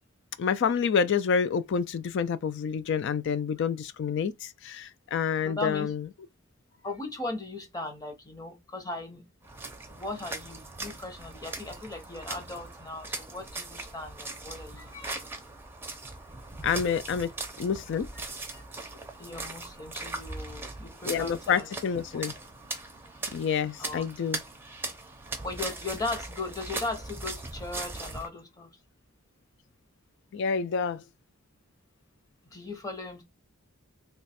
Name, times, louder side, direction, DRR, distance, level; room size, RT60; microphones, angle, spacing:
voice 1, 0.4-6.1 16.6-17.3 17.6-18.1 21.0-22.3 23.3-24.4 30.3-31.0, left 6 dB, 55° left, 0.3 m, -28 dB
voice 2, 5.4-5.9 6.8-9.3 9.9-15.2 18.5-18.6 18.9-21.7 23.8-24.1 25.4-28.7 32.5-33.2, left 2 dB, 15° left, 0.8 m, -38 dB
sound 1, 9.4-28.3, right 2 dB, 10° right, 0.5 m, -40 dB
3.1 x 2.3 x 4.1 m
head